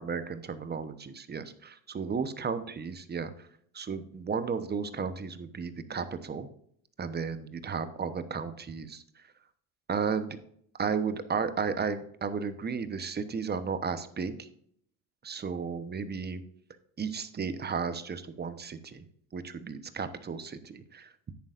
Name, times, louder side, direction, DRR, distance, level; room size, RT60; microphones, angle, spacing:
voice 1, 0.0-3.5 3.7-6.5 7.0-9.0 9.9-10.4 10.8-14.5 15.2-16.4 17.0-19.0 19.3-21.3, right 5 dB, 25° right, 11 dB, 1.0 m, -34 dB
10.5 x 8.9 x 2.5 m, 0.65 s
supercardioid pair, 85°, 37 cm